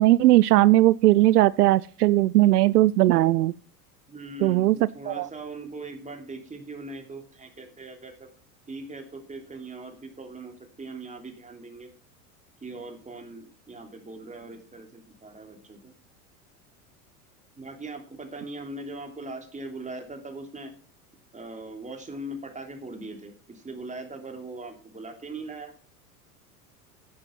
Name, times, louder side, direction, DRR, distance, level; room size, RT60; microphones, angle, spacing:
voice 1, 0.0-3.5 4.4-4.8 5.1-5.3, right 16 dB, 80° right, 0.5 m, -18 dB
voice 2, 4.1-8.3 8.7-11.9 12.6-15.9 17.6-20.7 21.3-25.7, right 2 dB, 15° right, 3.2 m, -40 dB
10.5 x 8.8 x 5.8 m
hypercardioid pair, 90°, 46 cm